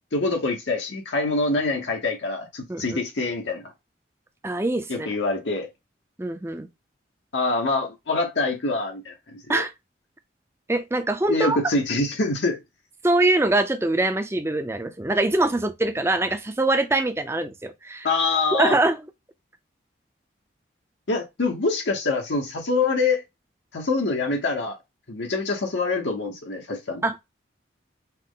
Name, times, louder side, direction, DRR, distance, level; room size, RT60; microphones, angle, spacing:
voice 1, 0.1-3.7 4.9-5.7 7.3-9.6 11.3-12.6 18.0-18.8 21.1-23.2 23.7-24.8 25.1-27.0, left 3 dB, 80° left, 0.9 m, -25 dB
voice 2, 2.7-3.0 4.4-5.1 6.2-6.7 9.5-9.7 10.7-11.6 13.0-18.1 18.5-19.0 27.0-27.2, right 2 dB, 15° right, 0.5 m, -23 dB
5.7 x 2.1 x 3.6 m
head